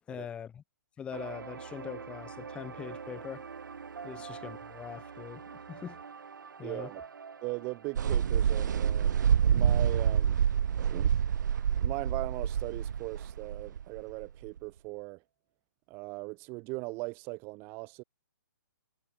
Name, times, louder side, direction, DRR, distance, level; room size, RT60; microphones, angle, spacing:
voice 1, 0.1-0.6 1.0-3.4 4.0-6.0 6.6-6.9, left 8 dB, 10° left, 6.2 m, -42 dB
sound 1, 1.1-11.6 12.0-12.1 12.5-12.6, right 6 dB, 85° right, 5.5 m, -46 dB
voice 2, 6.6-7.0 7.4-10.4 10.8-11.1 11.8-15.2 15.9-18.0, right 27 dB, 20° right, 5.9 m, -39 dB
sound 2, 8.0-14.6, right 8 dB, 65° right, 0.5 m, -27 dB
hypercardioid pair, 165°, 10 cm